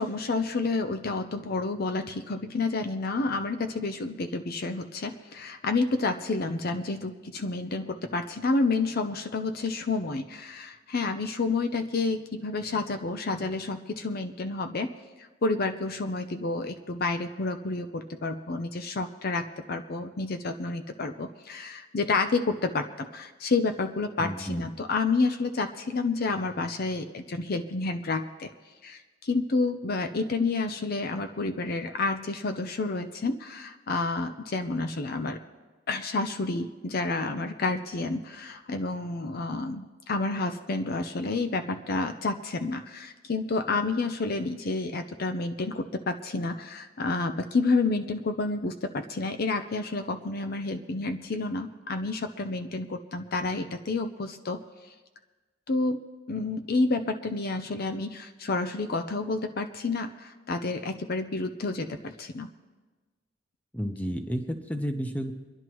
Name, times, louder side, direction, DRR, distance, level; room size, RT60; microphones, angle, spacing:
voice 1, 0.0-14.9 15.4-28.5 28.8-35.4 35.9-54.6 55.7-56.0 56.3-62.5, left 3 dB, 55° left, 7 dB, 0.6 m, -29 dB
voice 2, 24.2-24.7 63.7-65.3, equal, 10° left, 5 dB, 0.9 m, -31 dB
27.5 x 11.0 x 3.0 m, 1.3 s
head